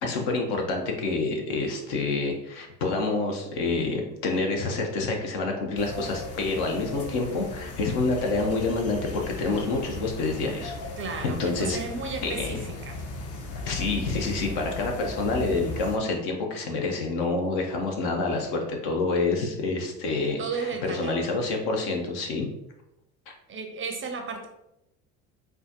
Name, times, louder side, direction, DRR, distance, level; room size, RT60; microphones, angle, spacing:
voice 1, 0.0-10.7 11.2-11.8 12.2-12.6 13.6-22.5, left 3 dB, 60° left, 2 dB, 0.9 m, -27 dB
sound 1, 5.8-16.0, left 2 dB, 35° left, 0.7 m, -37 dB
voice 2, 11.0-13.0 20.4-21.3 23.5-24.5, right 4 dB, 30° right, 4 dB, 0.5 m, -34 dB
4.3 x 2.3 x 2.7 m, 0.85 s
hypercardioid pair, 65°, 44 cm